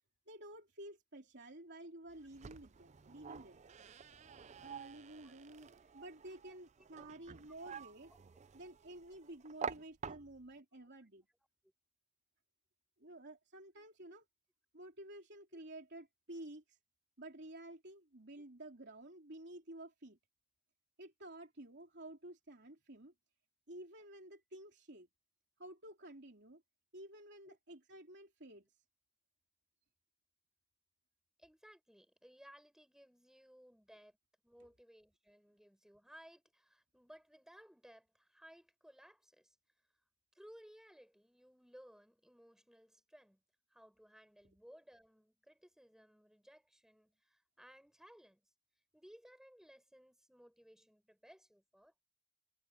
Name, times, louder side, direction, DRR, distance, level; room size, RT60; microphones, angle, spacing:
voice 1, 0.3-8.1 8.5-11.3 13.0-14.3 14.7-16.8 17.2-20.2 21.0-23.1 23.7-25.1 25.6-26.6 26.9-28.7, right 1 dB, 50° right, 3.6 m, -52 dB
sound 1, 2.1-10.6, right 6 dB, 30° right, 0.4 m, -49 dB
voice 2, 5.2-5.7 6.8-7.2 8.1-8.2 10.7-11.0 14.0-14.2 15.5-15.6 18.4-18.5 27.5-27.6 31.4-34.2 34.4-39.6 40.3-43.4 43.7-48.5 48.9-51.9, equal, ahead, 6.3 m, -61 dB
head